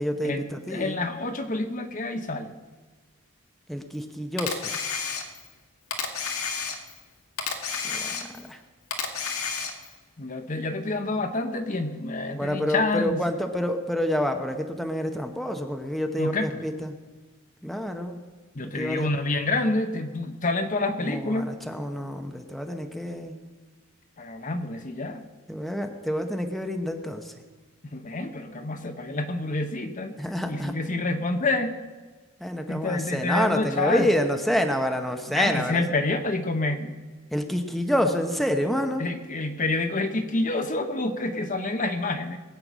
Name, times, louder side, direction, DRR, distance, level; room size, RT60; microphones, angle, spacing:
voice 1, 0.0-1.0 3.7-4.8 7.8-8.6 12.3-16.9 17.6-18.2 18.8-19.1 21.0-23.4 25.5-27.4 30.2-30.7 32.4-35.8 37.3-39.0, equal, ahead, 4 dB, 0.9 m, -28 dB
voice 2, 0.7-2.5 10.2-13.2 16.2-16.6 18.5-21.5 24.2-25.2 27.9-30.1 30.5-31.8 32.7-34.1 35.3-37.0 39.0-42.4, left 2 dB, 35° left, 7 dB, 0.9 m, -28 dB
Camera, 4.4-5.5 5.9-7.0 7.4-8.5 8.9-10.0, left 6 dB, 85° left, 1.8 m, -31 dB
21.0 x 8.6 x 6.2 m, 1.3 s
head